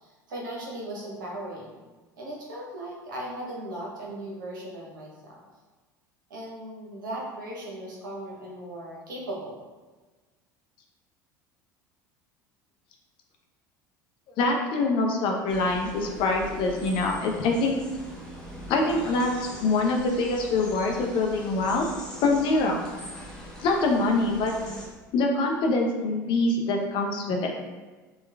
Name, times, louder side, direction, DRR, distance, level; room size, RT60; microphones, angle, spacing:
voice 1, 0.0-1.8 2.2-5.3 6.3-9.6, right 1 dB, 80° right, -4 dB, 0.7 m, -37 dB
voice 2, 14.4-17.8 18.7-21.9 22.2-22.8 23.6-24.5 25.1-27.5, left 2 dB, 50° left, 2 dB, 0.5 m, -24 dB
sound 1, 15.5-24.9, equal, 5° left, 0.9 m, -42 dB
2.9 x 2.2 x 2.2 m, 1.3 s
hypercardioid pair, 75°, 10 cm